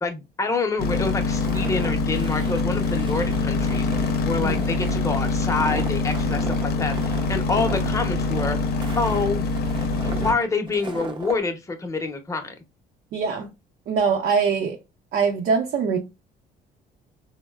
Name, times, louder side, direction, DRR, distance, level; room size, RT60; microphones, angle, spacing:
voice 1, 0.0-8.6 9.0-9.5 10.0-12.5, left 3 dB, 20° left, 0.7 m, -27 dB
sound 1, 0.8-10.3, left 3 dB, 65° left, 0.6 m, -24 dB
Walk footsteps, 1.4-11.4, right 4 dB, 30° right, 0.6 m, -36 dB
voice 2, 13.1-13.5 13.9-14.8 15.1-16.0, right 5 dB, 65° right, 0.7 m, -23 dB
4.1 x 2.1 x 2.3 m
cardioid pair, 110°, 17 cm